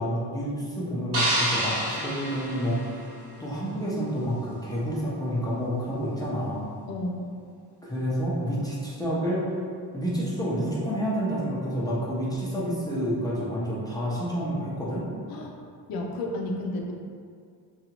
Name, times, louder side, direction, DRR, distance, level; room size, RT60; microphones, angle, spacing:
voice 1, 0.0-3.0 3.4-6.7 7.8-9.4 9.9-15.1, equal, 10° left, -8 dB, 0.6 m, -29 dB
sound 1, 1.1-3.4, right 1 dB, 35° right, 0.9 m, -28 dB
voice 2, 6.9-7.3 15.3-15.6 15.9-16.9, left 1 dB, 60° left, 1 dB, 0.6 m, -32 dB
2.7 x 2.4 x 2.8 m, 2.2 s
cardioid pair, 95°, 41 cm